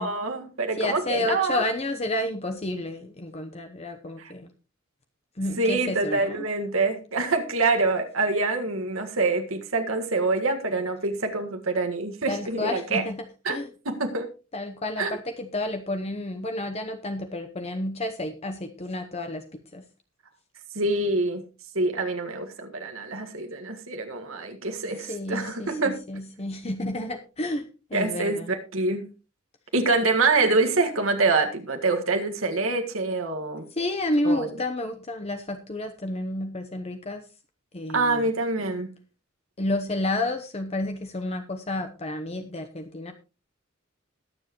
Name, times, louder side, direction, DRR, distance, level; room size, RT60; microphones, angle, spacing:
voice 1, 0.0-1.6 4.2-4.3 5.6-13.0 13.5-13.6 13.9-14.3 15.0-15.2 20.8-21.4 21.8-26.0 27.9-29.1 29.7-33.7 34.2-34.5 37.9-38.9, right 3 dB, 85° right, 1.7 m, -25 dB
voice 2, 0.8-4.5 5.4-6.5 12.3-13.7 14.5-19.8 25.0-28.5 33.7-37.2 37.7-38.2 39.6-43.1, left 1 dB, 30° left, 0.8 m, -30 dB
21.0 x 7.4 x 3.0 m
head